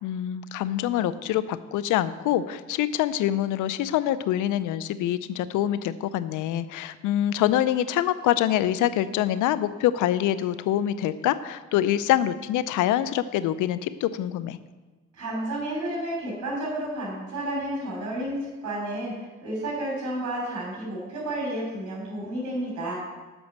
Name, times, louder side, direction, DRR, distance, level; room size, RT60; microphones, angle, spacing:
voice 1, 0.0-14.6, left 12 dB, 80° left, 14 dB, 0.5 m, -25 dB
voice 2, 15.1-19.1 19.4-23.0, right 1 dB, 70° right, -3 dB, 3.0 m, -31 dB
7.0 x 5.2 x 7.0 m, 1.3 s
cardioid pair, 90°, 30 cm